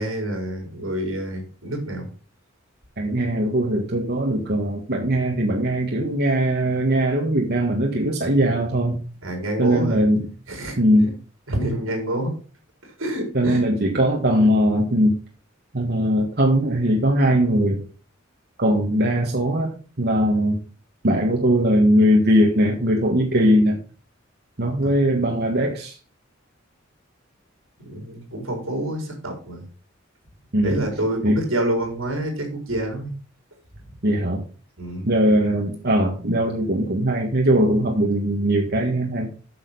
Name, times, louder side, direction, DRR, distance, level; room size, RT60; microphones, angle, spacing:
voice 1, 0.0-2.1 9.2-10.0 10.5-10.8 11.5-12.3 13.0-13.6 24.8-24.9 27.8-29.6 30.6-33.1 34.8-35.1, right 1 dB, 85° right, 3 dB, 4.4 m, -27 dB
voice 2, 3.0-9.0 9.6-10.3 10.8-11.1 13.3-15.2 15.7-17.8 18.6-19.7 20.0-20.6 21.0-23.8 24.6-26.0 30.5-30.8 31.2-31.4 34.0-34.4 35.0-39.3, equal, 55° right, 0 dB, 1.6 m, -20 dB
8.6 x 6.7 x 5.4 m, 0.37 s
head